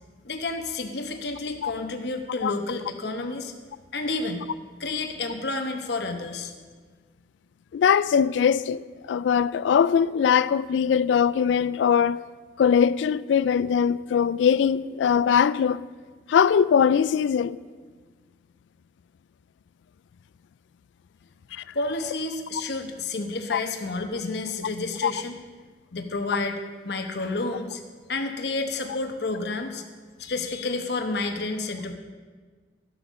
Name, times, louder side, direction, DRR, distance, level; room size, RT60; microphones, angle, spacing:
voice 1, 0.2-3.5 3.9-4.4 4.8-6.5 21.7-25.3 25.9-26.6 26.8-27.8 28.1-29.8 30.2-32.0, left 3 dB, 65° left, 1.0 m, -30 dB
voice 2, 7.7-12.2 12.6-15.8 16.3-17.6 21.5-21.6 23.5-23.6 25.0-25.1, left 7 dB, 85° left, 0.3 m, -21 dB
13.0 x 7.9 x 6.2 m
head